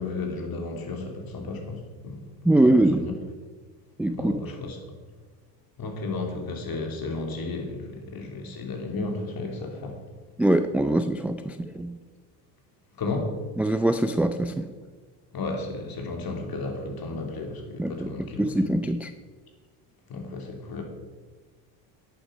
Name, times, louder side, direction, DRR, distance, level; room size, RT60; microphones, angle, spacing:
voice 1, 0.0-3.1 4.1-4.8 5.8-10.0 12.9-13.4 15.3-18.5 20.1-20.8, left 3 dB, 45° left, 3 dB, 3.0 m, -33 dB
voice 2, 2.4-3.1 4.0-4.3 10.4-12.0 13.6-14.7 17.8-19.1, right 1 dB, 5° right, 8 dB, 0.4 m, -23 dB
11.0 x 8.8 x 5.1 m, 1.4 s
hypercardioid pair, 80°, 50 cm